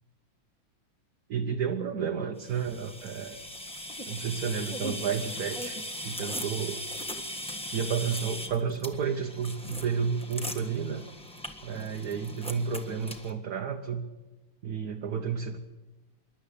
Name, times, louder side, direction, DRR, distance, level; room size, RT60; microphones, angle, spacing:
voice 1, 1.3-3.4 4.1-6.9 7.6-11.1 11.6-14.0 14.6-15.6, right 6 dB, 55° right, 3 dB, 1.3 m, -31 dB
sound 1, 2.4-13.3, equal, 5° left, 1.2 m, -39 dB
26.5 x 11.5 x 8.6 m, 1.1 s
omnidirectional pair, 2.4 m